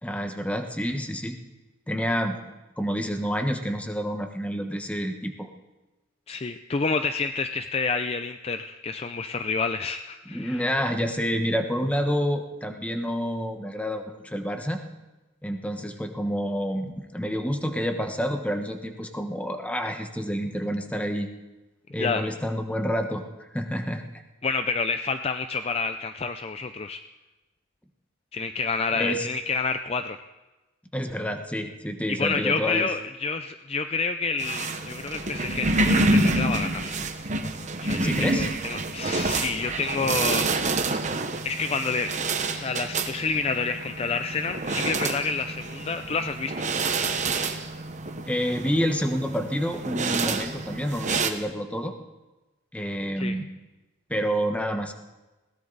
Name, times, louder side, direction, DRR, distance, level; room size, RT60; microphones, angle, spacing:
voice 1, 0.0-1.4 1.9-2.4 2.8-5.5 10.3-14.8 15.4-21.3 21.9-23.2 23.5-24.0 28.9-29.3 30.9-32.9 38.0-38.5 48.3-51.9 52.7-53.4 54.1-54.9, equal, 5° left, 5 dB, 1.2 m, -28 dB
voice 2, 6.3-10.6 22.0-22.2 24.4-27.0 28.3-30.2 32.1-37.0 37.8-40.9 41.4-46.7 53.2-53.4, left 4 dB, 30° left, 9 dB, 0.5 m, -29 dB
sound 1, 34.4-51.3, right 2 dB, 40° right, 1.1 m, -28 dB
20.5 x 17.5 x 4.0 m, 1.1 s
head